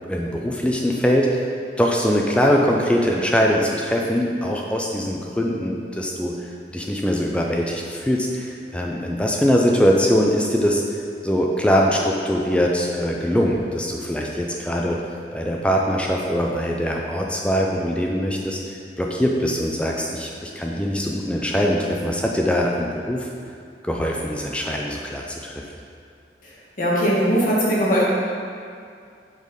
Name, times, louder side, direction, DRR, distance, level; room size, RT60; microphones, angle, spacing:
voice 1, 0.0-1.4 1.8-6.3 6.7-10.8 11.2-15.0 15.3-18.6 19.0-23.3 23.8-25.5, equal, 5° left, -1 dB, 0.4 m, -22 dB
voice 2, 26.8-28.0, equal, 50° left, -6 dB, 1.4 m, -20 dB
5.1 x 4.0 x 5.2 m, 2.3 s
head